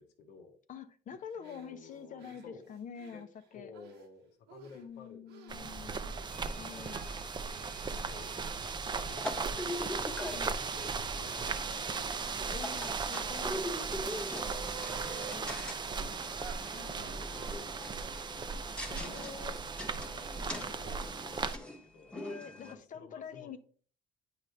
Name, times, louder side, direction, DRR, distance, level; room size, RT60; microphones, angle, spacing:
voice 1, 0.0-0.6 1.1-2.7 3.1-3.2 3.5-6.3 7.3-9.7 10.3-12.9 13.9-18.7 20.0-22.2 22.5-23.5, left 4 dB, 90° left, 5 dB, 1.2 m, -55 dB
voice 2, 0.7-3.3 3.5-3.7 4.7-6.1 6.6-7.2 10.3-10.6 12.5-13.7 16.7-17.1 18.9-19.6 22.1-23.6, left 7 dB, 50° left, 9 dB, 0.8 m, -46 dB
sound 1, 1.4-4.1 4.5-5.0 5.3-5.6 6.1-6.4 6.8-18.5, right 7 dB, 90° right, 1.2 m, -57 dB
sound 2, 5.5-21.6, right 5 dB, 25° right, 0.5 m, -37 dB
sound 3, 6.3-22.7, left 1 dB, 5° left, 1.3 m, -43 dB
8.9 x 5.0 x 3.4 m, 0.43 s
cardioid pair, 110°, 17 cm